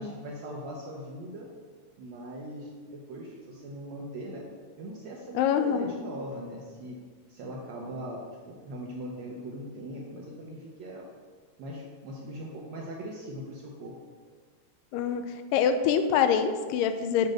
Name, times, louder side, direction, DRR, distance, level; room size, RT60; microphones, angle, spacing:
voice 1, 0.0-1.5 2.0-4.5 4.8-7.0 7.3-11.1 11.6-14.0, right 1 dB, 80° right, -2 dB, 1.6 m, -40 dB
voice 2, 5.4-5.9 14.9-15.2 15.5-17.3, left 7 dB, 80° left, 8 dB, 2.1 m, -25 dB
8.2 x 3.2 x 6.3 m, 1.5 s
omnidirectional pair, 4.1 m